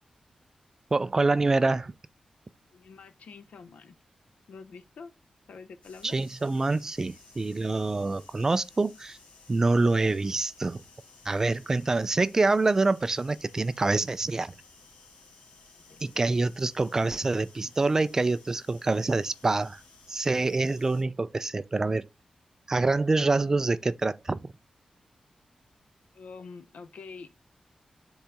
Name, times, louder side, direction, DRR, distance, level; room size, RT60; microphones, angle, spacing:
voice 1, 0.9-1.9 6.0-9.2 9.5-10.8 11.3-14.5 16.0-19.8 20.1-22.0 22.7-24.5, right 3 dB, 25° right, 0.3 m, -26 dB
voice 2, 2.7-3.9 4.5-5.1 5.5-6.2 15.9-16.0 26.1-27.3, left 4 dB, 90° left, 0.7 m, -46 dB
sound 1, 5.8-21.0, left 3 dB, 60° left, 2.2 m, -56 dB
7.2 x 3.8 x 3.5 m
wide cardioid pair, 180°, 2 cm